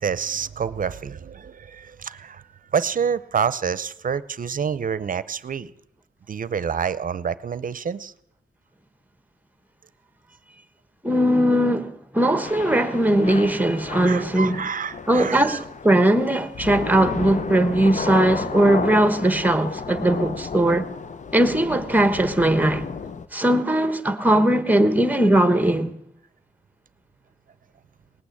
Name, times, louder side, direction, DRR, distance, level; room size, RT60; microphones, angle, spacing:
voice 1, 0.0-2.4 2.7-5.7 6.3-8.1 14.0-15.6, right 7 dB, 55° right, 0.7 m, -27 dB
voice 2, 11.0-14.6 15.1-20.9 21.3-22.9 23.3-25.9, right 1 dB, 10° right, 1.3 m, -19 dB
Thunder / Rain, 12.4-23.3, left 5 dB, 50° left, 0.8 m, -33 dB
19.0 x 8.8 x 8.5 m
wide cardioid pair, 120°, 16 cm